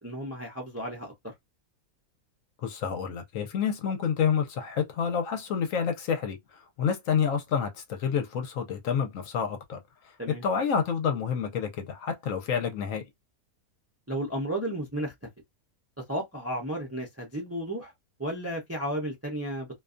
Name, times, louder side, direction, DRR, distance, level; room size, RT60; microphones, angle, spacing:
voice 1, 0.0-1.3 10.2-10.4 14.1-15.1 16.1-17.9 18.2-19.7, right 1 dB, 20° right, 0.4 m, -33 dB
voice 2, 2.6-6.4 6.8-9.8 10.4-13.0, left 7 dB, 70° left, 1.0 m, -28 dB
2.6 x 2.3 x 2.4 m
omnidirectional pair, 1.5 m